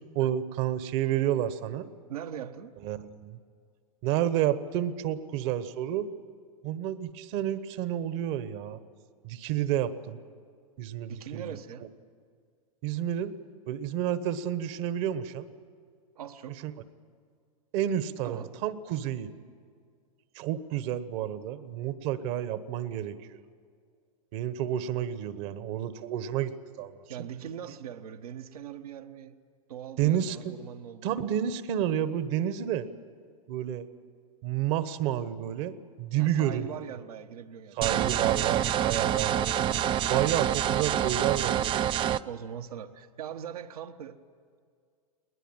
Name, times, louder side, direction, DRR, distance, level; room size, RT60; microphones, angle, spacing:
voice 1, 0.1-1.9 2.8-3.4 4.0-6.1 6.6-8.8 9.2-10.2 10.8-11.6 12.8-13.3 13.7-15.5 16.6-16.7 17.7-19.3 20.3-23.2 24.3-27.0 30.0-30.5 31.0-32.9 33.5-33.9 34.4-35.7 36.0-36.9 37.8-39.3 39.6-39.7 40.1-41.8, right 11 dB, 55° right, 13 dB, 1.3 m, -30 dB
voice 2, 2.1-2.7 11.1-11.9 16.2-16.7 18.2-18.5 27.1-29.4 29.7-31.2 36.2-38.5 39.3-40.0 42.2-44.2, right 8 dB, 75° right, 7 dB, 1.3 m, -41 dB
sound 1, 37.8-42.2, right 10 dB, 25° right, 0.5 m, -27 dB
20.5 x 20.0 x 9.0 m, 2.1 s
hypercardioid pair, 110°, 19 cm